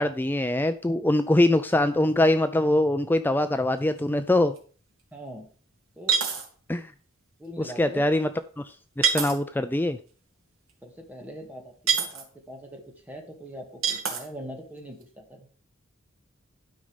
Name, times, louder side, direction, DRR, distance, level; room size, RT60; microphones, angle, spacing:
voice 1, 0.0-4.5 6.7-6.9 7.6-8.3 8.6-10.0, left 1 dB, 10° left, 10 dB, 0.4 m, -23 dB
sound 1, 4.0-4.1 4.6-4.7 6.1-6.5 9.0-9.4 11.9-12.2 13.8-14.3, right 6 dB, 80° right, 2.5 m, -25 dB
voice 2, 5.1-5.5 6.0-6.2 7.4-8.1 10.8-15.5, equal, 10° right, 2 dB, 1.9 m, -42 dB
11.5 x 5.4 x 5.1 m, 0.41 s
head